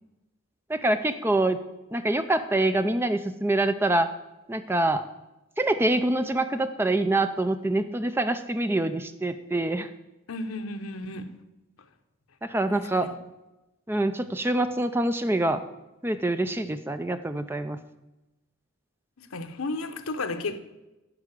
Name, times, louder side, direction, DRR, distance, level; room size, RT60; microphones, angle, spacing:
voice 1, 0.7-1.6 1.9-4.1 4.5-5.0 5.6-9.9 12.4-13.1 13.9-15.6 16.0-17.8, right 2 dB, 10° right, 0.4 m, -25 dB
voice 2, 10.3-11.3 12.7-13.1 19.2-20.6, left 2 dB, 80° left, 0.9 m, -33 dB
11.0 x 4.8 x 8.2 m
head